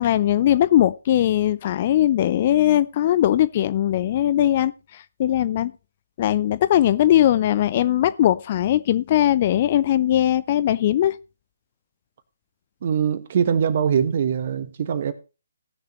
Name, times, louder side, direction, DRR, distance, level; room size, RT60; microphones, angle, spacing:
voice 1, 0.0-5.7 6.2-11.2, left 12 dB, 35° left, 0.4 m, -20 dB
voice 2, 12.8-15.1, right 7 dB, 40° right, 1.2 m, -22 dB
18.0 x 6.7 x 3.1 m
figure-of-eight pair, 140°, 0 cm